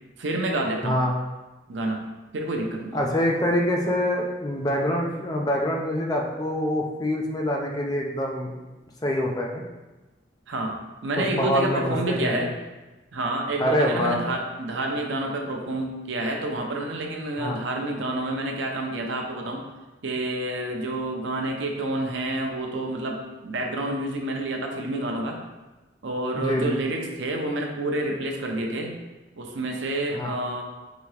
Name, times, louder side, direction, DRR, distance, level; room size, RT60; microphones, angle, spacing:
voice 1, 0.2-1.0 1.7-3.0 10.5-10.8 11.0-12.5 13.1-19.6 20.0-25.4 26.0-29.0 29.4-30.6, right 1 dB, 85° right, 2 dB, 0.6 m, -28 dB
voice 2, 2.9-8.5 9.0-9.6 11.2-12.5 13.6-14.2 17.4-17.6 26.4-26.8 30.1-30.3, left 1 dB, 20° left, 0 dB, 0.4 m, -25 dB
4.9 x 2.8 x 3.2 m, 1.1 s
head